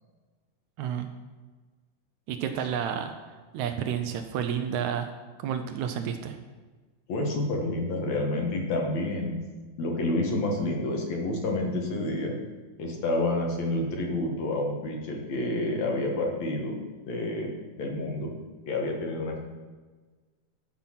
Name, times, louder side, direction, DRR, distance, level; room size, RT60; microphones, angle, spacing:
voice 1, 0.8-1.1 2.3-5.1 5.4-6.4, right 8 dB, 75° right, 7 dB, 1.9 m, -31 dB
voice 2, 7.1-9.4 9.8-12.3 12.8-16.7 17.1-17.5 17.8-18.3 18.7-19.4, left 2 dB, 65° left, 1 dB, 2.6 m, -29 dB
13.0 x 5.9 x 5.7 m, 1.3 s
omnidirectional pair, 3.6 m